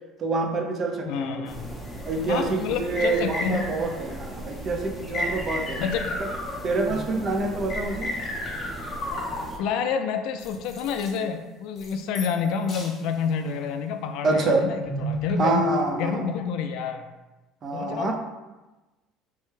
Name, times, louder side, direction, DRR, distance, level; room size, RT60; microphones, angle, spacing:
voice 1, 0.2-1.4 2.1-5.8 6.2-6.3 6.6-8.1 14.2-14.7 15.4-16.2 17.6-18.1, right 3 dB, 40° right, 2 dB, 0.5 m, -26 dB
voice 2, 1.1-1.7 2.3-3.7 5.8-6.2 6.9-7.1 9.6-15.6 16.0-17.1 17.7-18.1, left 6 dB, 70° left, 7 dB, 0.3 m, -28 dB
sound 1, 1.4-9.6, equal, 5° left, 0.6 m, -38 dB
sound 2, 1.9-2.0 3.0-4.0 5.1-6.9 7.7-9.7 10.4-11.2 11.8-12.4 12.7-13.0 13.5-13.7 14.3-16.2, left 1 dB, 40° left, 0.8 m, -33 dB
3.3 x 2.1 x 3.2 m, 1.1 s
cardioid pair, 120°, 0 cm